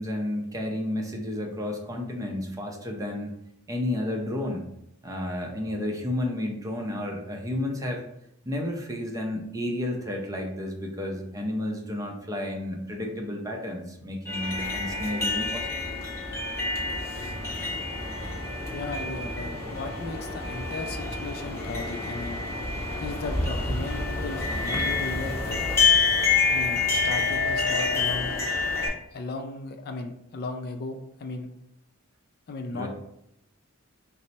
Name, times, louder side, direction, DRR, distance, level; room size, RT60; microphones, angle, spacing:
voice 1, 0.0-3.3 3.7-4.7 5.0-8.0 8.5-16.0 32.7-32.9, left 1 dB, 15° right, 1 dB, 0.5 m, -31 dB
sound 1, 14.2-28.9, left 4 dB, 10° left, 0.8 m, -27 dB
voice 2, 18.7-22.4 23.0-25.6 26.5-28.4 29.1-31.5 32.5-32.9, left 3 dB, 45° left, 5 dB, 0.3 m, -36 dB
4.2 x 2.0 x 4.0 m, 0.78 s
head